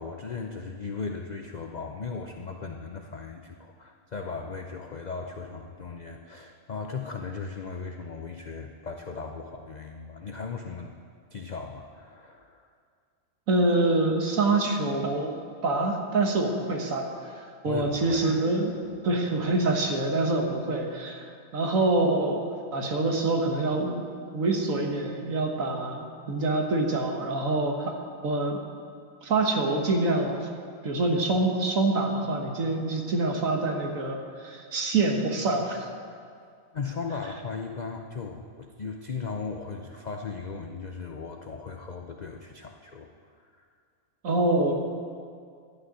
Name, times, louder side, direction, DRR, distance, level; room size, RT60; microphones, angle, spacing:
voice 1, 0.0-10.9 11.3-12.7 17.6-18.5 36.7-43.1 43.4-43.7, left 4 dB, 60° left, 3 dB, 0.4 m, -37 dB
voice 2, 13.5-15.3 15.6-18.7 19.0-21.3 21.5-22.4 22.7-24.0 24.3-27.9 28.2-28.6 29.2-30.4 30.8-35.9 44.2-44.7, right 2 dB, 60° right, 2 dB, 1.7 m, -26 dB
11.5 x 6.5 x 9.5 m, 2.2 s
omnidirectional pair, 1.6 m